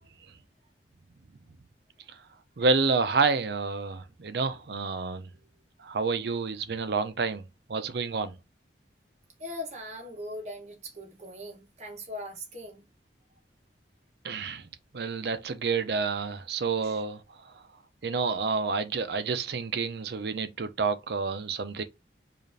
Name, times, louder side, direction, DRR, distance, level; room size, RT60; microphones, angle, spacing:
voice 1, 2.6-5.3 5.8-7.4 7.7-8.3 14.2-14.7 14.9-17.2 18.0-21.8, right 4 dB, 65° right, 0.5 m, -29 dB
voice 2, 9.4-12.9 16.8-17.0, left 1 dB, 40° right, 1.1 m, -40 dB
4.9 x 2.5 x 2.6 m
head